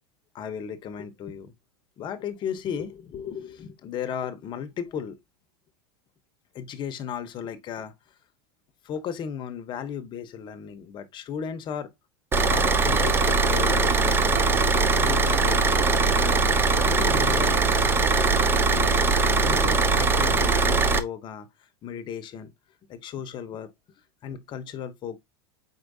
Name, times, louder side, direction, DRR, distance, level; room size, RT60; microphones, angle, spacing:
voice 1, 0.3-1.5 2.0-5.2 6.5-7.9 8.8-11.9 12.5-14.2 15.0-15.8 16.1-16.4 16.8-21.5 21.8-22.5 22.9-23.7 24.2-25.2, left 8 dB, 35° left, 0.8 m, -35 dB
Car / Idling, 12.3-21.0, right 3 dB, 15° right, 0.5 m, -21 dB
4.5 x 4.3 x 2.6 m
supercardioid pair, 120°, 14 cm